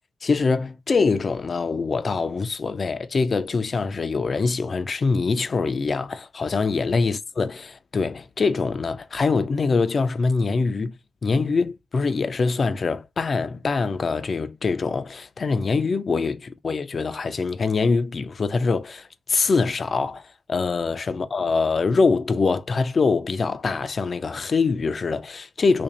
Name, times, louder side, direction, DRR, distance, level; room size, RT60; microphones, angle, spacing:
voice 1, 0.2-10.9 11.2-20.2 20.5-25.8, left 4 dB, 50° left, 0.4 m, -24 dB
2.9 x 2.6 x 4.0 m
cardioid pair, 75°, 0 cm